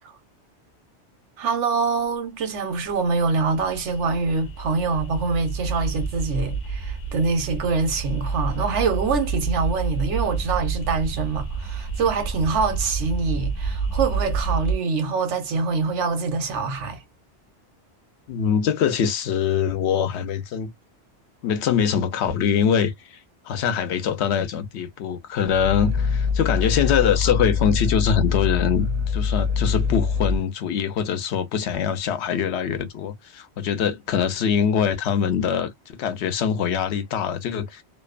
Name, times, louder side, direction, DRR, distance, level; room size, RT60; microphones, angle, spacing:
voice 1, 1.4-17.0, right 4 dB, 85° right, 1.1 m, -25 dB
sound 1, 2.9-14.8, right 4 dB, 45° left, 0.8 m, -29 dB
voice 2, 18.3-20.7 21.4-37.8, left 7 dB, 75° left, 0.9 m, -23 dB
Growling, 25.5-30.4, left 5 dB, 50° right, 0.5 m, -24 dB
2.7 x 2.0 x 2.3 m
omnidirectional pair, 1.2 m